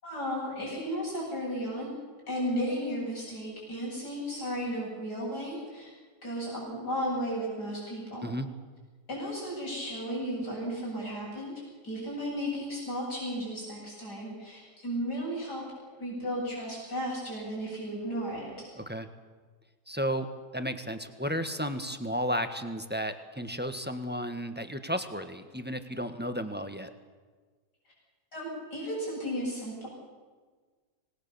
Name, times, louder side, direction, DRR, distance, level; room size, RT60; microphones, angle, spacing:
voice 1, 0.0-2.0 2.3-5.9 6.2-8.3 9.1-15.6 16.0-18.7 28.3-29.9, equal, 75° left, -3 dB, 8.7 m, -34 dB
voice 2, 19.9-20.3 20.5-26.9, equal, 5° right, 8 dB, 1.3 m, -33 dB
26.5 x 20.0 x 7.0 m, 1.4 s
omnidirectional pair, 1.8 m